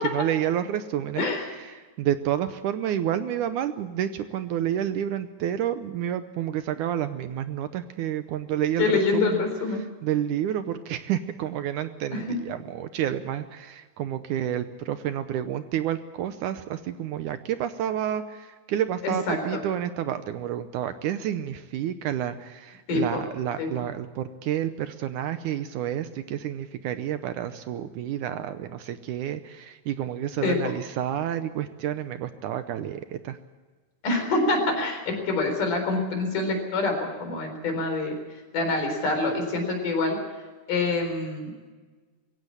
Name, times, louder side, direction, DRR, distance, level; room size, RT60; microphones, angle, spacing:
voice 1, 0.1-1.2 1.7-9.5 10.0-33.4, right 10 dB, 75° right, 10 dB, 2.1 m, -29 dB
voice 2, 1.2-1.5 8.8-9.8 12.1-12.4 19.0-19.6 22.9-23.2 23.6-23.7 30.4-30.7 34.0-38.1 38.5-40.2 40.7-41.5, left 3 dB, 65° left, 4 dB, 5.6 m, -26 dB
22.0 x 16.5 x 8.5 m, 1.4 s
omnidirectional pair, 4.0 m